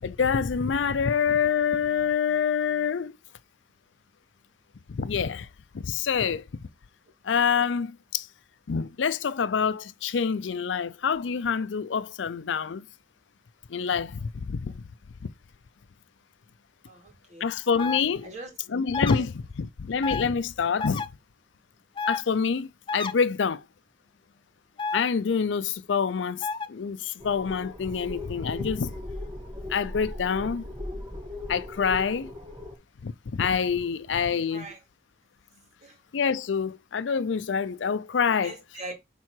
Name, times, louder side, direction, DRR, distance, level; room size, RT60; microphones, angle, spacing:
voice 1, 0.0-3.2 4.9-5.5 5.7-6.5 7.2-8.3 8.7-12.9 13.7-14.8 15.2-15.3 17.4-18.3 18.7-21.1 22.1-23.6 24.9-28.9 29.7-30.6 31.5-32.3 33.0-34.7 36.1-38.6, left 6 dB, 80° left, 0.5 m, -26 dB
voice 2, 16.9-17.5 18.2-18.6 19.2-19.3 34.5-34.8 35.8-36.0 38.4-38.9, right 2 dB, 40° right, 2.2 m, -41 dB
sound 1, 17.8-18.0 18.9-19.2 20.0-20.2 20.8-21.1 22.0-22.2 22.9-23.1 24.8-25.0 26.4-26.7, left 4 dB, 25° left, 0.5 m, -30 dB
sound 2, 27.2-32.8, left 2 dB, 20° right, 1.7 m, -38 dB
6.0 x 3.7 x 4.4 m
head